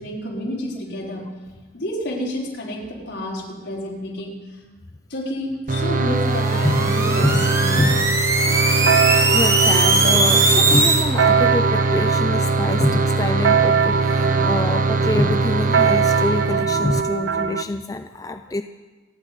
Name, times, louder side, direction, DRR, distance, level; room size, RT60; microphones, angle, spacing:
voice 1, 0.0-1.4 1.7-4.5 5.1-7.9, left 1 dB, 70° left, -2 dB, 4.2 m, -30 dB
sound 1, 5.7-17.0, right 3 dB, 45° right, 0.8 m, -22 dB
sound 2, 6.2-11.1, right 2 dB, 15° right, 1.2 m, -20 dB
sound 3, 8.5-17.6, right 6 dB, 85° right, 0.6 m, -23 dB
voice 2, 8.9-18.6, left 1 dB, 20° left, 7 dB, 0.4 m, -25 dB
27.5 x 9.6 x 5.0 m, 1.3 s
head